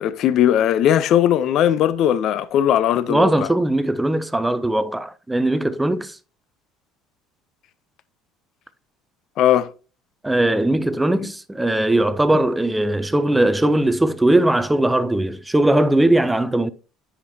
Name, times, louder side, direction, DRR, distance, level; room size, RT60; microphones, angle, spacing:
voice 1, 0.0-3.5 9.4-9.7, left 10 dB, 50° left, 0.5 m, -18 dB
voice 2, 3.1-6.2 10.2-16.7, right 1 dB, 5° right, 0.4 m, -19 dB
9.8 x 5.1 x 2.7 m
cardioid pair, 150°, 0 cm